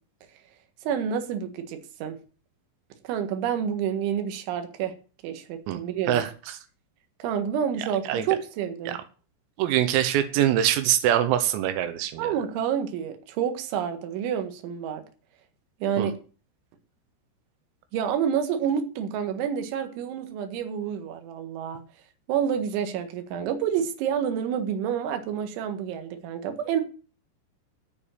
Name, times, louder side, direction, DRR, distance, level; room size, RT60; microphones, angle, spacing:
voice 1, 0.8-2.2 3.0-4.9 5.2-6.2 7.2-9.0 12.2-15.0 15.8-16.2 17.9-21.8 22.3-26.8, right 8 dB, 70° right, 3.8 m, -28 dB
voice 2, 9.6-12.4 16.0-16.1, right 11 dB, 90° right, 3.8 m, -23 dB
14.0 x 5.2 x 8.9 m
omnidirectional pair, 5.9 m